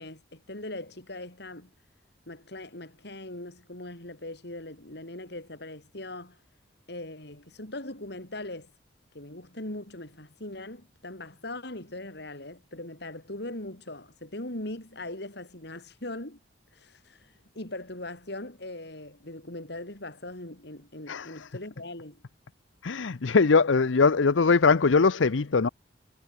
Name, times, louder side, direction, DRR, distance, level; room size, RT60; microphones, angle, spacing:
voice 1, 0.0-1.7 2.3-6.4 6.9-8.7 9.1-16.4 16.7-22.2, left 1 dB, 60° left, 4.5 m, -40 dB
voice 2, 21.1-21.5 22.8-25.7, left 4 dB, 90° left, 0.7 m, -21 dB
head